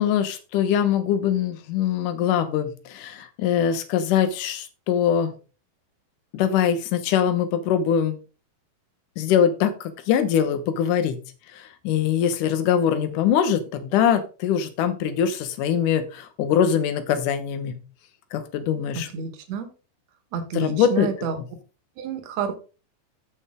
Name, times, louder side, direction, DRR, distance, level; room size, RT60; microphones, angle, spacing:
voice 1, 0.0-5.3 6.3-8.2 9.2-11.2 11.8-17.8 18.3-19.1 20.5-21.1, left 8 dB, 65° left, 10 dB, 2.4 m, -22 dB
voice 2, 19.1-19.7 20.3-21.4 22.0-22.5, right 6 dB, 55° right, 7 dB, 2.4 m, -29 dB
15.0 x 5.3 x 3.7 m, 0.33 s
omnidirectional pair, 4.4 m